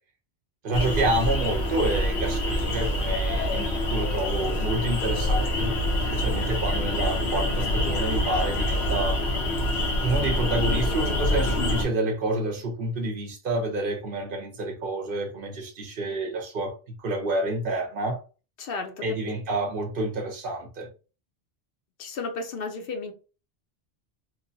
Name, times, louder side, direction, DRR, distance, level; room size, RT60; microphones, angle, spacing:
voice 1, 0.6-5.8 6.1-9.2 10.0-18.2 19.0-20.9, right 2 dB, 60° right, 0.8 m, -29 dB
sound 1, 0.7-11.9, left 1 dB, 90° left, 1.0 m, -26 dB
voice 2, 18.6-19.0 22.0-23.1, left 4 dB, 65° left, 0.7 m, -33 dB
3.1 x 2.1 x 2.6 m
omnidirectional pair, 1.1 m